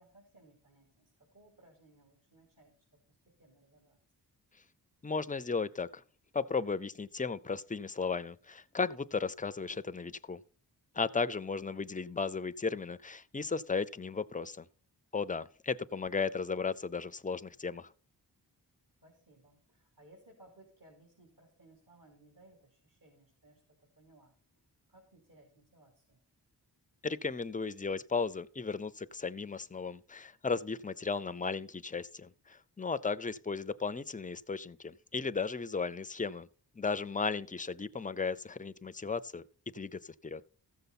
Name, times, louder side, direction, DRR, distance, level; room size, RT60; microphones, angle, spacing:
voice 1, 0.0-2.7 3.2-4.0 19.0-24.3 24.9-26.2, right 1 dB, 55° right, 3.2 m, -62 dB
voice 2, 5.0-6.0 6.3-10.4 10.9-14.7 15.1-17.9 27.0-36.5 36.8-39.4 39.7-40.4, left 4 dB, 20° left, 0.4 m, -35 dB
15.0 x 6.8 x 4.1 m
wide cardioid pair, 120°, 41 cm